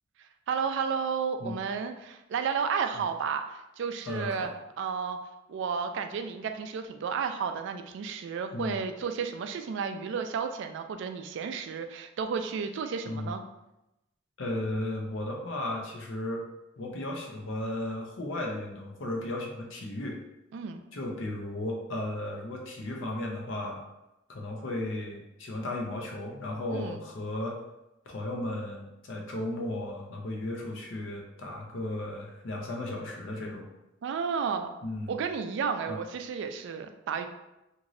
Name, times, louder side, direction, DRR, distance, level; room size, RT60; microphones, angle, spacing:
voice 1, 0.5-4.5 4.8-5.2 5.5-13.4 20.5-20.8 26.7-27.0 34.0-34.7 35.1-37.3, right 6 dB, 65° right, 7 dB, 0.3 m, -32 dB
voice 2, 4.1-4.5 8.5-8.7 13.1-13.3 14.4-16.4 16.8-20.2 20.9-23.8 24.3-27.6 28.1-33.7 34.8-35.1 35.9-36.0, left 1 dB, 75° left, 0 dB, 0.6 m, -35 dB
3.0 x 2.6 x 2.5 m, 0.93 s
head